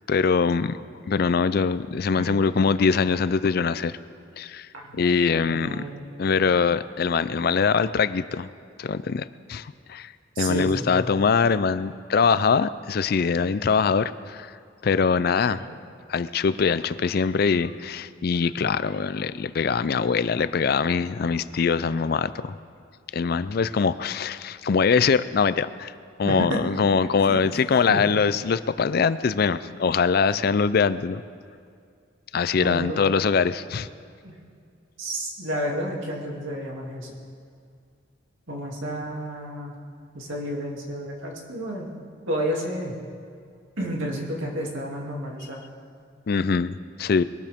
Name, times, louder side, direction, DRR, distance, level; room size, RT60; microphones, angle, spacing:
voice 1, 0.1-0.8 1.1-4.0 4.4-4.7 4.9-5.8 6.2-8.5 8.8-10.1 10.4-14.5 14.8-15.6 16.1-22.5 23.1-25.9 26.2-31.2 32.3-33.9 46.3-47.2, left 5 dB, 50° left, 15 dB, 0.4 m, -23 dB
voice 2, 4.7-5.2 5.4-6.1 10.3-11.1 15.4-15.8 26.2-26.6 27.0-27.4 27.9-28.0 32.6-33.0 34.2-34.4 35.0-37.1 38.5-39.7 40.1-41.9 42.3-42.9 43.8-45.6, equal, 85° right, -2 dB, 2.7 m, -31 dB
22.0 x 13.0 x 3.6 m, 2.3 s
head